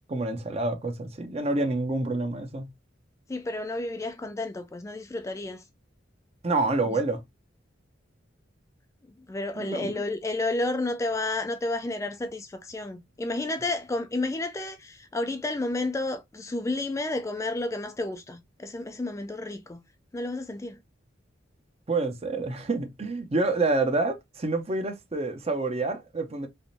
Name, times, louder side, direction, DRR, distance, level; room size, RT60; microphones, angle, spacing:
voice 1, 0.1-2.7 6.4-7.2 9.6-9.9 21.9-26.5, right 2 dB, 35° right, 0.7 m, -28 dB
voice 2, 3.3-5.6 6.9-7.0 9.3-19.8 20.1-20.8, left 2 dB, 15° left, 0.3 m, -31 dB
3.5 x 3.0 x 2.6 m
head